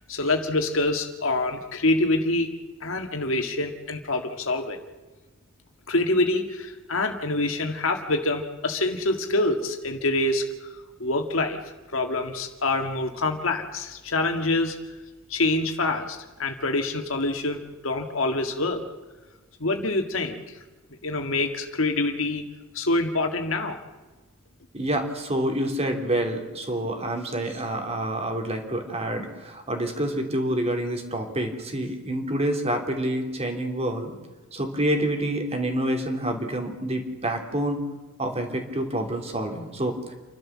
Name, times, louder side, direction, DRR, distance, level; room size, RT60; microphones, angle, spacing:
voice 1, 0.1-2.5 2.8-4.8 5.9-10.7 11.0-11.6 11.9-14.8 15.3-18.9 19.6-20.4 21.0-22.4 22.7-23.8, left 2 dB, 75° left, 5 dB, 1.9 m, -26 dB
voice 2, 24.7-34.2 34.5-37.8 38.2-40.0, right 1 dB, 30° right, 4 dB, 3.3 m, -27 dB
29.0 x 12.5 x 7.5 m, 1.2 s
head